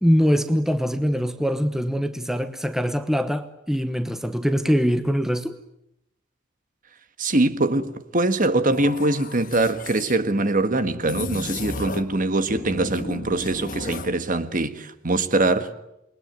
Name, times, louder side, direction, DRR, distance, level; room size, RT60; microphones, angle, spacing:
voice 1, 0.0-5.6, equal, ahead, 1.0 m, -23 dB
voice 2, 7.2-15.7, right 2 dB, 40° right, 1.6 m, -23 dB
sound 1, 8.7-10.2 11.0-12.2 12.5-14.2, left 2 dB, 40° left, 1.6 m, -34 dB
28.5 x 22.0 x 9.4 m
head